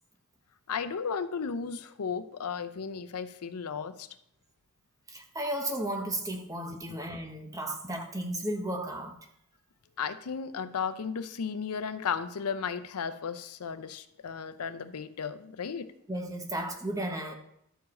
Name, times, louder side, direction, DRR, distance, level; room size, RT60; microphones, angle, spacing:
voice 1, 0.7-4.1 6.9-7.0 10.0-15.9, left 6 dB, 90° left, 11 dB, 0.5 m, -34 dB
voice 2, 5.1-9.2 16.1-17.3, right 1 dB, 15° right, 3 dB, 0.9 m, -34 dB
12.0 x 4.6 x 4.3 m, 0.76 s
head